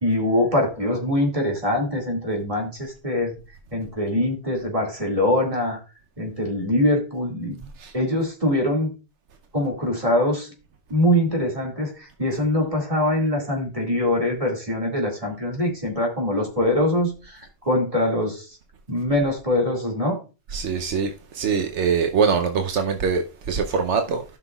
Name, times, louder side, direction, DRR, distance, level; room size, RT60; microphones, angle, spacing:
voice 1, 0.0-3.4 3.7-5.8 6.2-7.7 7.9-8.9 9.5-10.5 10.9-18.6 18.9-20.2, left 1 dB, 30° right, 2.2 m, -23 dB
voice 2, 20.5-24.2, right 6 dB, 80° right, 1.1 m, -23 dB
15.0 x 5.8 x 2.3 m
omnidirectional pair, 1.2 m